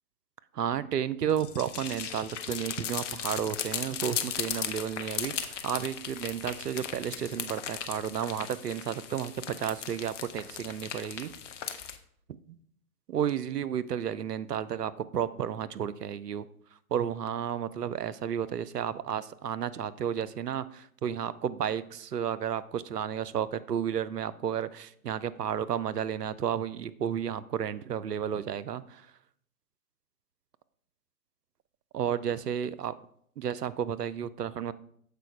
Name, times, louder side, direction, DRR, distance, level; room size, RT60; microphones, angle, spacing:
voice 1, 0.5-11.3 13.1-16.5 16.9-29.1 31.9-32.9 33.4-34.7, right 9 dB, 90° right, 15 dB, 0.6 m, -32 dB
sound 1, 1.3-12.0, left 8 dB, 50° left, 0.7 m, -37 dB
6.9 x 4.7 x 4.6 m, 0.64 s
figure-of-eight pair, 125°, 46 cm